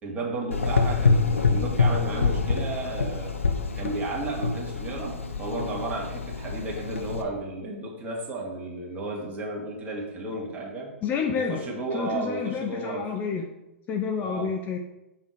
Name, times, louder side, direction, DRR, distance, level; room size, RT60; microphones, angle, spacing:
voice 1, 0.0-3.3 3.7-10.9 11.3-13.1 14.2-14.5, right 2 dB, 20° right, -2 dB, 2.3 m, -33 dB
Gurgling / Engine, 0.5-7.2, left 4 dB, 80° left, 0.9 m, -26 dB
voice 2, 11.0-11.6 11.9-13.5 13.9-14.8, left 6 dB, 25° left, 4 dB, 0.7 m, -29 dB
6.8 x 5.6 x 4.6 m, 0.94 s
figure-of-eight pair, 115°, 7 cm